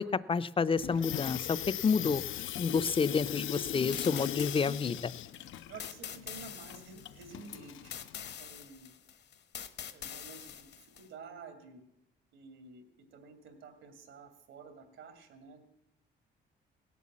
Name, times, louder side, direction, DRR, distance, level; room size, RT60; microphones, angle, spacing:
voice 1, 0.0-1.6 1.8-2.2 2.6-5.1, left 5 dB, 25° left, 16 dB, 0.5 m, -29 dB
Water tap faucet / Sink (filling or washing), 0.8-8.3, left 12 dB, 80° left, 0.6 m, -39 dB
sound 1, 3.9-11.1, left 8 dB, 60° left, 1.0 m, -45 dB
voice 2, 5.7-8.0 8.4-8.9 9.9-11.8 12.3-15.7, right 5 dB, 80° right, 6 dB, 2.6 m, -51 dB
17.0 x 8.3 x 7.4 m, 0.84 s
cardioid pair, 90°, 20 cm